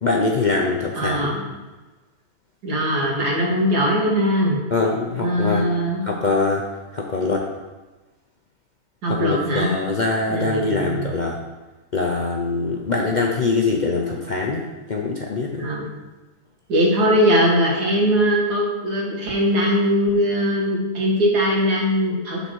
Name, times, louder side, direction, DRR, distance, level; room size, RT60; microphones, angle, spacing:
voice 1, 0.0-1.3 4.7-5.7 6.0-6.7 6.9-7.5 9.1-11.4 11.9-15.7, left 3 dB, 60° left, 0 dB, 0.4 m, -23 dB
voice 2, 1.0-1.4 2.6-4.6 5.2-6.0 9.0-9.7 10.3-11.1 15.6-15.9 16.7-22.4, equal, 80° right, -2 dB, 2.2 m, -20 dB
6.9 x 4.2 x 6.2 m, 1.2 s
omnidirectional pair, 1.7 m